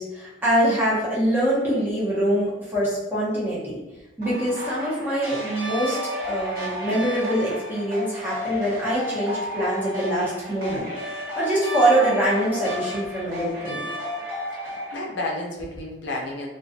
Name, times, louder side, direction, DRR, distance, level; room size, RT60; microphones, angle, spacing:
voice 1, 0.0-3.8 4.2-6.0 6.3-10.8 11.3-13.8, right 1 dB, 10° right, -8 dB, 0.8 m, -24 dB
sound 1, 4.2-15.0, left 1 dB, 55° right, 1.1 m, -32 dB
voice 2, 14.6-16.5, left 2 dB, 80° left, -2 dB, 0.5 m, -31 dB
2.4 x 2.3 x 2.5 m, 1.1 s
head